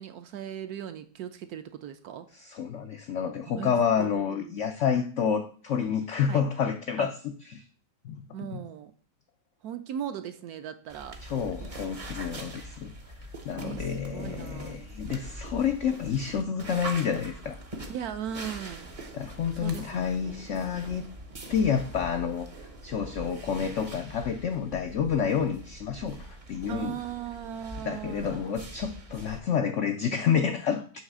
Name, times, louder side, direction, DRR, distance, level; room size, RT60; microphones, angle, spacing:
voice 1, 0.0-2.3 3.5-4.5 6.3-6.4 7.0-7.1 8.3-8.9 9.6-11.2 13.6-14.8 17.9-18.9 19.6-20.3 26.7-28.5, right 9 dB, 70° right, 1.0 m, -38 dB
voice 2, 2.3-7.6 8.0-8.3 8.5-8.6 11.2-12.9 13.4-17.6 19.1-21.1 21.5-22.5 22.8-27.0 27.8-31.0, left 7 dB, 90° left, 0.6 m, -29 dB
sound 1, 10.9-29.4, right 1 dB, 40° right, 0.5 m, -43 dB
7.2 x 3.3 x 6.0 m
omnidirectional pair, 1.9 m